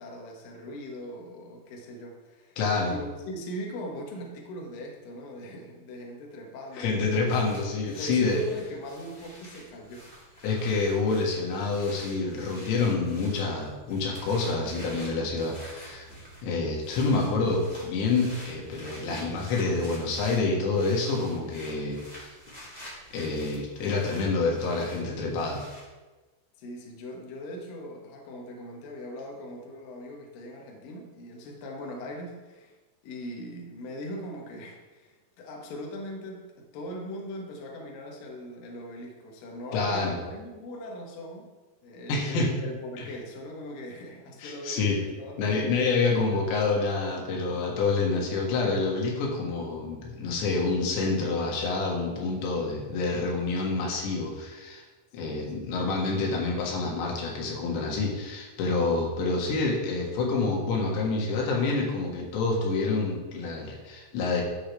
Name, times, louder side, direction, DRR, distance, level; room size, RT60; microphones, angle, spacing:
voice 1, 0.0-2.6 2.9-7.3 7.8-10.1 26.6-32.8 33.0-41.5 41.8-45.7 55.2-55.5, equal, 65° left, 0 dB, 2.6 m, -40 dB
voice 2, 2.6-3.0 6.7-8.4 10.4-16.1 16.4-22.3 23.1-25.6 39.7-40.1 42.1-42.5 43.0-43.1 44.4-45.0 45.4-54.8 55.1-64.4, left 3 dB, 85° left, -1 dB, 3.8 m, -27 dB
sound 1, 7.3-25.8, equal, 20° left, 1.6 m, -48 dB
13.0 x 6.4 x 3.4 m, 1.2 s
omnidirectional pair, 5.0 m